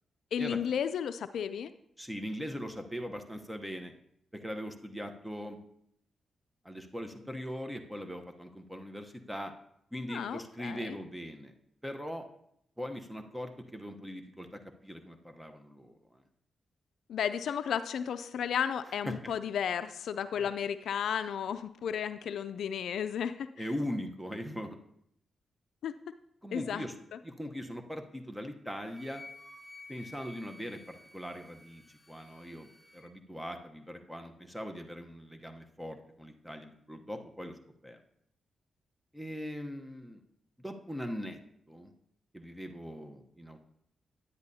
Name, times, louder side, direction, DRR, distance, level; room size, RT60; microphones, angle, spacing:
voice 1, 0.3-1.7 10.1-11.0 17.1-23.7 25.8-26.0 26.5-26.9, left 8 dB, 80° left, 12 dB, 0.3 m, -33 dB
voice 2, 2.0-3.9 4.3-5.6 6.6-9.5 9.9-11.5 11.8-12.2 12.8-15.9 19.1-19.3 20.4-20.5 23.6-24.8 26.4-26.9 27.2-29.2 29.9-32.7 32.9-37.6 37.8-38.0 39.1-40.2 40.6-41.4 41.7-41.9 42.3-43.6, equal, 5° right, 5 dB, 0.9 m, -40 dB
Wind instrument woodwind instrument, 28.9-33.1, left 2 dB, 15° left, 3.7 m, -53 dB
10.5 x 9.8 x 2.7 m, 0.73 s
cardioid pair, 70°, 0 cm